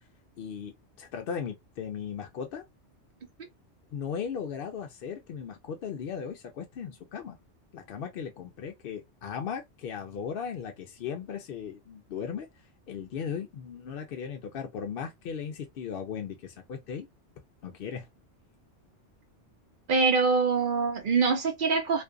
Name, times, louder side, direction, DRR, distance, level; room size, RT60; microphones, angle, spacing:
voice 1, 0.4-2.6 3.9-7.4 7.7-12.5 12.9-17.1 17.6-18.1, left 7 dB, 60° left, 0.6 m, -37 dB
voice 2, 19.9-22.0, right 4 dB, 50° right, 0.8 m, -24 dB
2.5 x 2.3 x 2.2 m
omnidirectional pair, 1.2 m